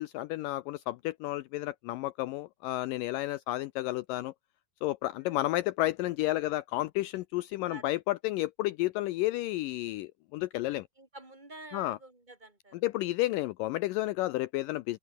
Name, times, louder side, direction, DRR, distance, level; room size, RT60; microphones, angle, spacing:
voice 1, 0.0-4.3 4.8-10.9 11.7-12.0 12.8-15.0, left 17 dB, 85° left, 2.0 m, -31 dB
voice 2, 5.1-5.4 7.7-7.8 11.0-12.8, right 2 dB, 10° right, 3.2 m, -49 dB
open air
omnidirectional pair, 4.5 m